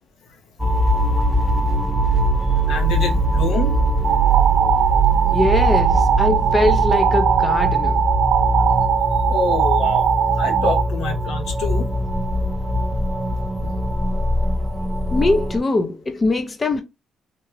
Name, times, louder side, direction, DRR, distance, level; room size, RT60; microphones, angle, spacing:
sound 1, 0.6-15.6, right 1 dB, 5° right, 0.7 m, -21 dB
voice 1, 2.7-3.8 9.3-10.0 10.4-11.9 13.6-13.7, left 3 dB, 75° left, 0.9 m, -26 dB
sound 2, 4.0-10.8, right 9 dB, 70° right, 0.3 m, -20 dB
voice 2, 5.3-8.1 15.1-16.8, left 2 dB, 30° left, 0.4 m, -22 dB
3.6 x 2.2 x 3.1 m
cardioid pair, 90°, 0 cm